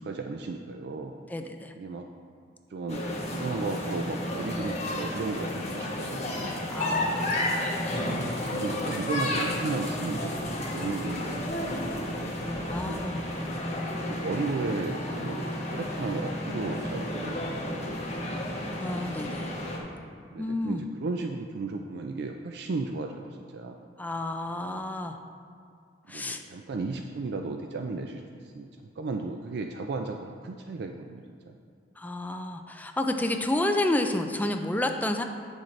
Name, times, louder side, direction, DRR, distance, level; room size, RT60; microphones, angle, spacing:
voice 1, 0.0-1.1 1.8-2.1 2.7-3.1 3.3-6.5 8.5-13.0 14.1-18.4 20.3-23.8 24.7-24.8 26.1-28.7 29.0-31.6, right 3 dB, 65° right, 4 dB, 0.4 m, -35 dB
voice 2, 1.3-1.7 6.7-7.6 12.7-13.2 18.8-19.5 20.4-20.8 24.0-25.2 26.1-26.4 32.0-35.2, left 1 dB, 10° left, 5 dB, 0.3 m, -30 dB
sound 1, 2.9-19.8, left 1 dB, 40° left, 1.2 m, -32 dB
8.6 x 6.4 x 3.2 m, 2.3 s
head